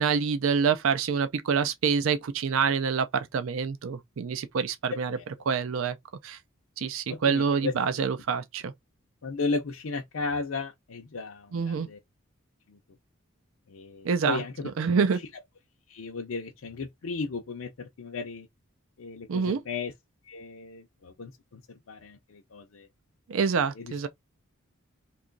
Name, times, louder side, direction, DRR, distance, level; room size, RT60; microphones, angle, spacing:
voice 1, 0.0-5.2 5.5-6.0 6.2-6.4 6.8-8.7 11.5-11.9 14.0-14.4 14.8-15.2 19.3-19.6 23.3-24.1, right 6 dB, 75° right, 0.4 m, -26 dB
voice 2, 7.1-7.7 9.2-12.0 12.7-12.8 13.7-14.7 15.9-18.5 19.0-19.9 20.3-22.9 23.8-23.9, left 4 dB, 70° left, 0.5 m, -35 dB
2.9 x 2.3 x 3.8 m
head